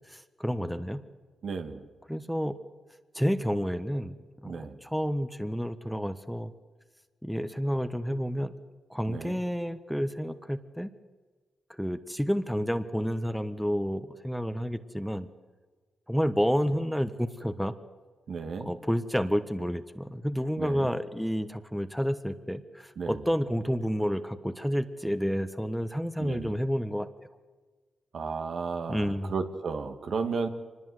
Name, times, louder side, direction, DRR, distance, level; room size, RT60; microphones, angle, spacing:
voice 1, 0.1-1.0 2.1-2.6 3.1-4.2 4.4-6.5 7.2-8.5 8.9-10.9 11.8-15.3 16.1-17.7 18.6-27.1 28.9-29.3, equal, ahead, 10 dB, 1.4 m, -30 dB
voice 2, 1.4-1.8 4.4-4.8 9.1-9.4 18.3-18.7 20.6-20.9 23.0-23.2 26.2-26.5 28.1-30.5, right 5 dB, 70° right, 6 dB, 2.4 m, -34 dB
24.5 x 20.5 x 8.1 m, 1.4 s
cardioid pair, 70°, 0 cm